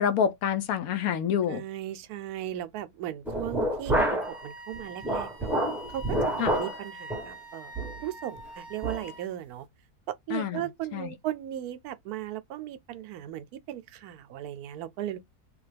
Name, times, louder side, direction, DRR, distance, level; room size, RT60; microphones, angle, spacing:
voice 1, 0.0-1.6 6.4-6.5 10.3-10.6 10.9-11.1, left 8 dB, 70° left, 1.0 m, -27 dB
voice 2, 1.5-5.5 5.9-9.7 10.1-15.2, right 12 dB, 80° right, 1.0 m, -37 dB
sound 1, 3.3-4.4 4.7-6.8 7.1-7.3 7.7-8.0 8.4-8.5 8.8-9.0, right 1 dB, ahead, 0.9 m, -28 dB
Wind instrument woodwind instrument, 4.2-9.3, equal, 20° left, 0.7 m, -45 dB
3.5 x 2.3 x 3.2 m
omnidirectional pair, 1.6 m